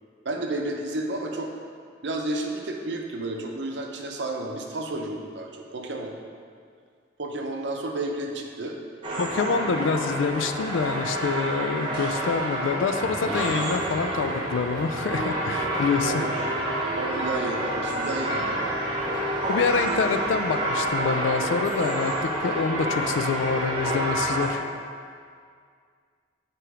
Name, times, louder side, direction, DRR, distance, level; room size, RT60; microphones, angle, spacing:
voice 1, 0.2-1.5 2.0-6.2 7.2-8.8 16.0-16.3 17.0-18.9 19.9-20.0, right 2 dB, 65° right, 2 dB, 0.7 m, -31 dB
sound 1, 9.0-24.5, right 1 dB, 25° right, 0.9 m, -28 dB
voice 2, 9.2-16.2 19.5-24.6, left 5 dB, 80° left, 9 dB, 0.4 m, -26 dB
Engine starting / Idling, 13.0-23.6, equal, ahead, 1.6 m, -40 dB
7.8 x 3.1 x 4.9 m, 2.1 s
head